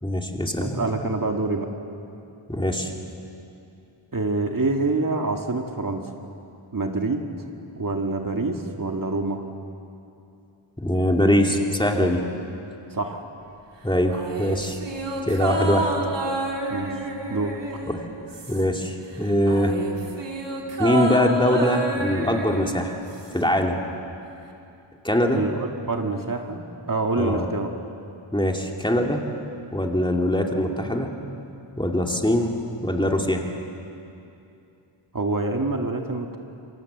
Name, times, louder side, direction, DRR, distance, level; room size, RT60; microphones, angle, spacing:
voice 1, 0.0-0.8 2.5-2.9 10.8-12.2 13.8-14.8 15.2-15.9 17.9-18.1 18.5-19.8 20.8-22.9 23.3-23.8 25.0-25.4 27.2-27.5 28.3-29.2 29.7-31.1 31.8-32.5 32.8-33.4, left 1 dB, 10° left, 1 dB, 2.5 m, -22 dB
voice 2, 0.6-1.7 4.1-6.1 6.7-7.2 7.8-9.5 12.9-13.2 16.7-17.0 17.3-17.6 25.3-26.6 26.9-27.7 35.1-36.4, right 3 dB, 40° right, 3 dB, 2.0 m, -26 dB
sound 1, 14.1-18.9 19.1-23.5 23.8-23.9, right 3 dB, 60° right, 3.0 m, -29 dB
27.5 x 24.0 x 8.0 m, 2.7 s
wide cardioid pair, 100°, 49 cm